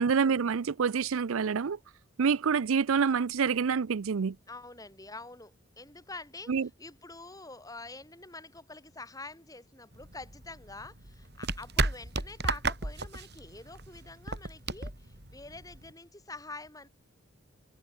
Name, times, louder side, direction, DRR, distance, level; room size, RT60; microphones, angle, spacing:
voice 1, 0.0-1.8 2.2-4.4 6.5-6.7, right 6 dB, 75° right, 0.5 m, -27 dB
voice 2, 4.5-6.5 6.8-16.9, left 3 dB, 15° left, 3.8 m, -46 dB
sound 1, 9.9-15.9, right 3 dB, 50° right, 4.5 m, -34 dB
head